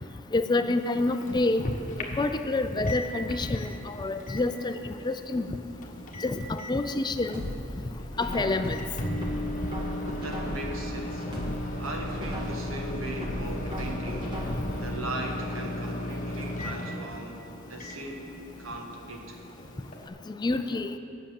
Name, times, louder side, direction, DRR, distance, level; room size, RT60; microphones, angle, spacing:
voice 1, 0.3-1.7 2.1-5.5 6.2-7.4 8.2-8.8 20.3-21.0, left 2 dB, 20° left, 9 dB, 0.4 m, -28 dB
Microwave oven, 0.8-20.1, left 1 dB, 40° left, 1.3 m, -37 dB
sound 1, 7.3-8.7 9.2-10.8 11.2-12.7 13.2-14.8 15.2-15.3, left 1 dB, 25° right, 1.6 m, -36 dB
voice 2, 10.0-11.3 11.8-14.4 14.7-19.4, right 1 dB, 85° right, 1 dB, 1.5 m, -39 dB
10.5 x 6.6 x 7.4 m, 2.7 s
head